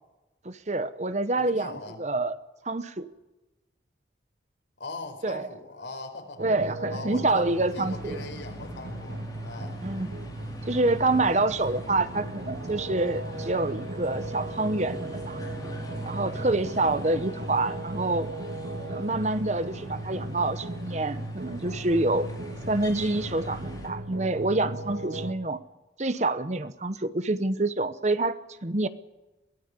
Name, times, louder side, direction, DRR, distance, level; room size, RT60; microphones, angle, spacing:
voice 1, 0.4-1.7 2.0-2.3 2.6-3.1 5.2-5.5 6.4-8.2 9.8-10.1 10.7-15.4 16.0-18.3 18.9-22.3 22.7-25.6 26.0-28.9, right 2 dB, 40° right, 13 dB, 0.9 m, -27 dB
voice 2, 1.4-2.0 4.8-6.4 6.9-9.8, left 2 dB, 80° left, 4 dB, 4.9 m, -40 dB
sound 1, 6.4-25.3, right 2 dB, 60° right, 1.5 m, -37 dB
sound 2, 7.4-23.9, left 1 dB, 20° left, 4.9 m, -43 dB
22.5 x 16.0 x 8.3 m, 1.0 s
head